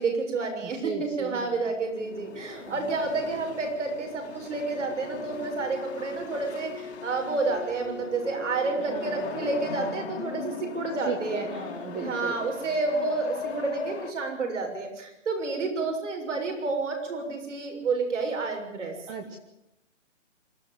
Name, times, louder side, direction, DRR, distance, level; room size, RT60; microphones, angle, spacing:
voice 1, 0.0-11.5 11.9-18.9, right 3 dB, 70° right, 3 dB, 6.8 m, -30 dB
voice 2, 0.6-1.7 2.6-2.9 8.9-9.4 11.1-12.4 19.1-19.4, right 5 dB, 10° right, 6 dB, 0.9 m, -36 dB
sound 1, 1.5-14.1, left 6 dB, 60° left, 2.9 m, -39 dB
26.0 x 12.5 x 8.8 m, 0.86 s
hypercardioid pair, 155°, 37 cm